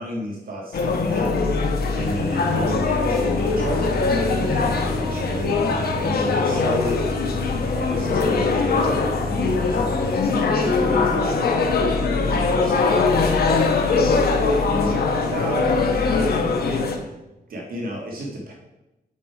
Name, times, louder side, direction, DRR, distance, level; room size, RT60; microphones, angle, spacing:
voice 1, 0.0-1.5 1.9-3.9 4.1-7.2 7.5-11.5 12.1-17.2 17.5-18.5, right 1 dB, 65° right, -1 dB, 1.6 m, -32 dB
sound 1, 0.7-17.0, left 4 dB, 75° left, 1.1 m, -21 dB
sound 2, 2.0-10.2, equal, 35° right, 2.4 m, -33 dB
7.5 x 4.8 x 4.7 m, 0.96 s
wide cardioid pair, 135°, 16 cm